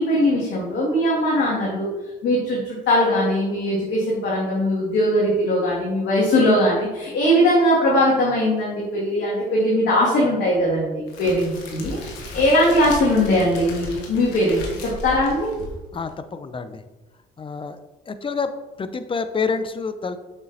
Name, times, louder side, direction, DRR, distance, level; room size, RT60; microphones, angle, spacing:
voice 1, 0.0-1.9 2.2-12.0 12.3-15.5, left 1 dB, 60° left, -6 dB, 2.0 m, -20 dB
Crackle, 11.1-16.1, left 1 dB, 80° left, 1.4 m, -36 dB
voice 2, 15.9-16.8 17.4-17.8 18.1-20.2, left 5 dB, 25° left, 11 dB, 0.6 m, -28 dB
7.0 x 6.4 x 2.7 m, 1.1 s
hypercardioid pair, 50°, 20 cm